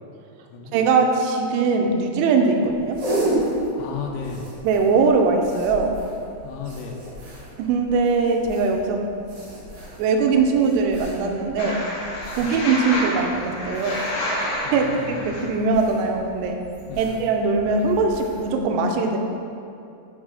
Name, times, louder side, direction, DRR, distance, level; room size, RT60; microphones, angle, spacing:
voice 1, 0.7-3.0 4.6-6.0 7.6-9.0 10.0-11.8 12.4-14.0 14.7-14.9 15.2-16.6 17.0-19.2, right 4 dB, 90° right, 3 dB, 2.4 m, -21 dB
sound 1, 2.6-18.6, right 1 dB, 60° right, 2.0 m, -34 dB
voice 2, 3.8-4.5 6.4-7.0 12.4-12.5 14.6-15.1 16.9-17.1, left 6 dB, 85° left, 0 dB, 3.0 m, -34 dB
sound 2, 11.6-15.4, left 1 dB, 65° left, 3.3 m, -29 dB
7.3 x 3.6 x 4.8 m, 2.5 s
omnidirectional pair, 5.4 m